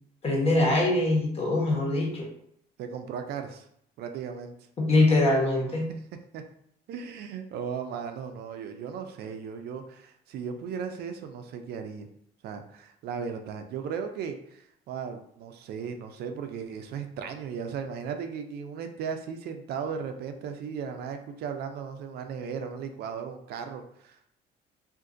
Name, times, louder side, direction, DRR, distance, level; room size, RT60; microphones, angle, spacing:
voice 1, 0.2-2.3 4.8-5.9, left 2 dB, 35° left, -1 dB, 1.1 m, -23 dB
voice 2, 2.8-3.7 4.0-4.5 6.3-6.4 6.9-12.1 12.4-24.3, right 6 dB, 70° right, 6 dB, 0.5 m, -36 dB
2.5 x 2.5 x 3.7 m, 0.69 s
cardioid pair, 110°, 17 cm